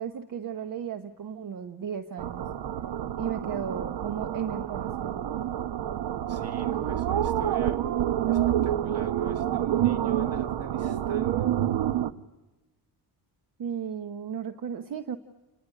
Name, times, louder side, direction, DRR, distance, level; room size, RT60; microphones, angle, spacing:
voice 1, 0.0-2.5 3.2-5.2 13.6-15.2, right 7 dB, 55° right, 10 dB, 1.1 m, -35 dB
sound 1, 2.2-12.1, right 11 dB, 75° right, 1.0 m, -28 dB
voice 2, 6.3-7.9 8.3-11.7, right 3 dB, 40° right, 7 dB, 2.5 m, -43 dB
29.5 x 20.0 x 9.8 m, 1.2 s
cardioid pair, 135°, 40 cm